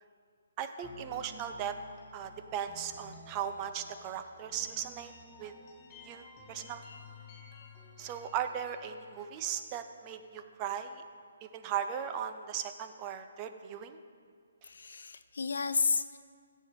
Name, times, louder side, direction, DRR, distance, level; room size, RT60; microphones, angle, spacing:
voice 1, 0.6-1.8 2.1-5.1 5.4-5.5 6.0-6.8 8.0-11.0 11.4-14.0, right 9 dB, 25° right, 9 dB, 0.7 m, -37 dB
sound 1, 0.8-10.6, left 2 dB, 30° left, 2.5 m, -53 dB
voice 2, 14.6-16.2, left 5 dB, 65° left, 12 dB, 0.5 m, -31 dB
15.5 x 8.2 x 3.8 m, 2.1 s
figure-of-eight pair, 135°, 0 cm